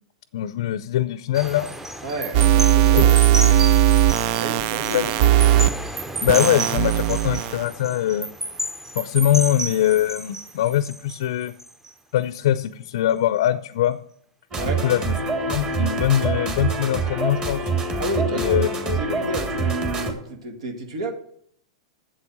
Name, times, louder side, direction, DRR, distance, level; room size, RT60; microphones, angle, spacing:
voice 1, 0.3-1.7 2.9-3.6 4.9-5.1 6.2-8.3 8.9-11.5 12.1-14.0 14.6-15.1 15.5-17.7 18.3-19.0, left 12 dB, 65° left, 0.5 m, -22 dB
sound 1, 1.3-11.9 12.3-12.6, right 1 dB, 10° right, 0.8 m, -32 dB
voice 2, 2.0-3.7 4.4-5.2 14.5-14.9 18.0-21.1, right 2 dB, 75° right, 2.0 m, -31 dB
sound 2, 2.3-5.7 6.3-7.6, right 13 dB, 50° right, 0.4 m, -18 dB
sound 3, 14.5-20.1, right 3 dB, 30° right, 2.8 m, -25 dB
8.0 x 7.8 x 7.1 m
hypercardioid pair, 105°, 3 cm